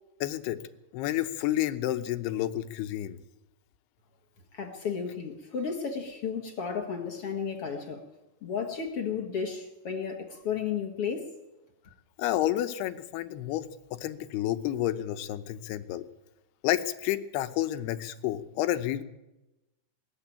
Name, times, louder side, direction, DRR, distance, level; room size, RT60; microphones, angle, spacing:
voice 1, 0.2-0.6 0.9-3.2 12.2-16.0 16.6-19.0, left 13 dB, 80° left, 2.9 m, -30 dB
voice 2, 4.5-8.1 8.4-11.3, left 6 dB, 55° left, 1.7 m, -33 dB
21.0 x 14.0 x 9.1 m
omnidirectional pair, 4.6 m